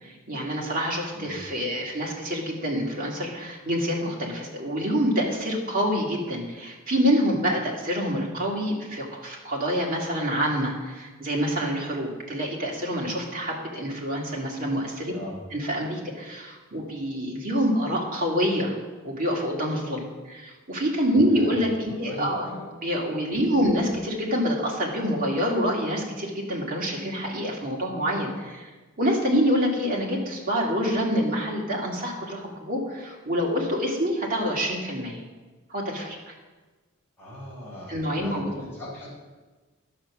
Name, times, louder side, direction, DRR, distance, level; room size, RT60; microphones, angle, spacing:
voice 1, 0.0-15.1 15.5-18.8 19.0-22.5 22.8-28.7 29.0-35.2 35.7-36.3 37.9-38.4, equal, 40° right, -2 dB, 2.3 m, -26 dB
voice 2, 1.1-1.5 15.1-15.4 21.2-21.6 22.0-22.6 23.5-23.8 37.2-39.1, left 1 dB, 10° left, -7 dB, 4.3 m, -39 dB
11.0 x 7.6 x 6.1 m, 1.3 s
head